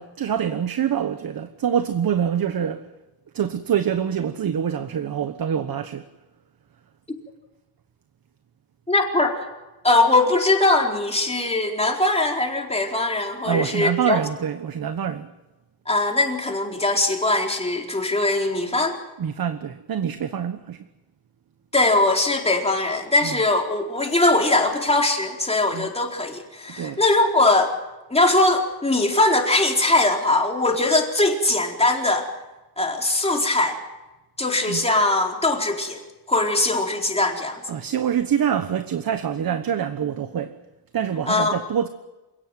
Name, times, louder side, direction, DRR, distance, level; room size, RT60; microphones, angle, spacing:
voice 1, 0.0-2.8 3.3-6.0 13.4-15.3 19.2-20.8 23.2-23.3 25.7-25.9 26.8-27.0 34.7-34.8 37.7-40.6 40.9-41.9, right 8 dB, 50° right, 1.3 m, -25 dB
voice 2, 8.9-9.4 9.8-14.2 15.9-19.0 21.7-27.7 28.1-32.3 32.8-33.8 34.4-36.0 36.3-37.6 41.3-41.6, left 2 dB, 15° left, 4.3 m, -21 dB
28.0 x 17.5 x 9.2 m
cardioid pair, 130°, 44 cm